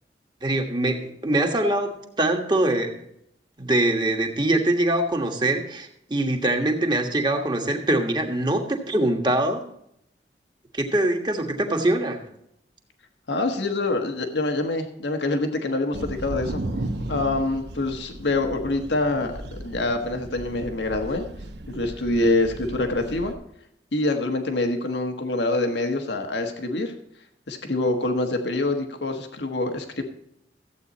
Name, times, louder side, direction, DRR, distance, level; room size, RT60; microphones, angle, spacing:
voice 1, 0.4-3.0 3.6-9.6 10.7-12.2, right 1 dB, 25° right, 3 dB, 1.5 m, -23 dB
voice 2, 13.3-16.6 17.1-21.2 21.7-23.3 23.9-26.9 27.5-30.0, left 2 dB, 85° left, 5 dB, 1.4 m, -25 dB
sound 1, 15.9-23.3, right 1 dB, 75° right, 1.0 m, -35 dB
14.5 x 8.5 x 4.2 m, 0.75 s
head